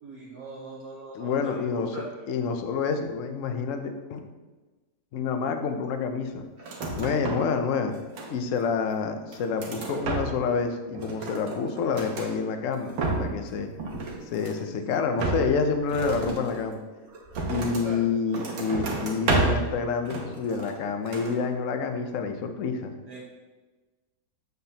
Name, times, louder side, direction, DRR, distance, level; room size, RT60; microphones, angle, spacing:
voice 1, 0.0-2.0 17.8-18.1 23.0-23.2, right 2 dB, 60° right, -4 dB, 1.4 m, -40 dB
voice 2, 1.1-1.9 2.3-4.2 5.1-6.5 6.9-7.9 8.3-12.9 13.2-13.7 14.3-16.8 17.5-22.9, left 5 dB, 60° left, 6 dB, 0.8 m, -28 dB
sound 1, 6.6-7.6 7.8-8.6 9.1-10.6 10.9-12.3 12.7-13.5 13.8-14.7 15.2-17.9 18.3-19.7 20.1-20.8 21.1-21.4, right 3 dB, 90° right, 1.8 m, -31 dB
7.7 x 7.5 x 2.8 m, 1.2 s
omnidirectional pair, 2.0 m